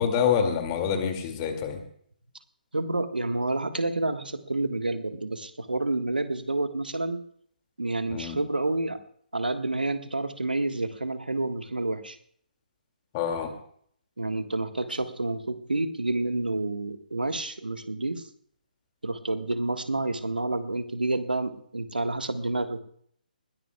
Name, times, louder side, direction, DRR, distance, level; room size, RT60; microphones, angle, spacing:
voice 1, 0.0-1.8 8.1-8.4 13.1-13.5, left 7 dB, 25° left, 5 dB, 2.3 m, -26 dB
voice 2, 2.7-7.2 7.8-9.0 9.3-12.2 14.2-18.3 19.0-22.8, right 2 dB, 80° right, 9 dB, 1.4 m, -29 dB
21.0 x 18.0 x 2.3 m, 0.62 s
figure-of-eight pair, 140°, 5 cm